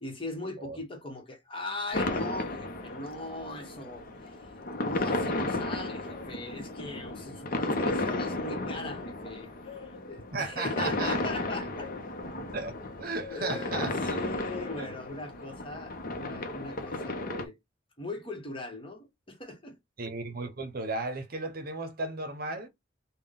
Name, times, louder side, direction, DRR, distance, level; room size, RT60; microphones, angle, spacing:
voice 1, 0.0-4.5 4.8-11.9 13.3-17.5 18.0-19.8, left 2 dB, 30° left, 1.1 m, -40 dB
sound 1, 1.9-17.5, left 2 dB, 50° left, 0.7 m, -34 dB
voice 2, 10.3-11.2 12.5-12.7 13.0-14.2 14.8-14.9 20.0-22.7, right 3 dB, 55° right, 0.8 m, -35 dB
3.6 x 2.2 x 3.6 m
head